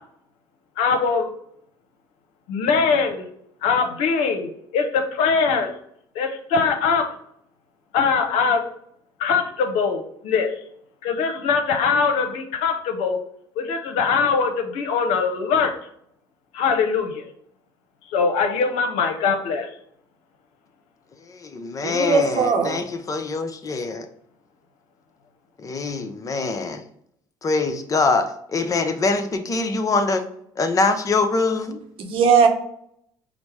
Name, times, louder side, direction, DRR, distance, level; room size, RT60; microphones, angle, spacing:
voice 1, 0.8-1.3 2.5-3.2 3.6-5.7 6.1-7.0 7.9-8.6 9.2-10.5 11.0-13.2 13.6-15.7 16.5-17.2 18.1-19.7, left 5 dB, 80° left, 5 dB, 0.8 m, -22 dB
voice 2, 21.3-24.1 25.6-26.8 27.4-30.3 30.6-31.8, left 3 dB, 30° left, 7 dB, 0.7 m, -24 dB
voice 3, 21.8-22.8 32.0-32.5, right 5 dB, 60° right, 4 dB, 0.9 m, -18 dB
5.0 x 2.0 x 4.6 m, 0.69 s
supercardioid pair, 80°, 10 cm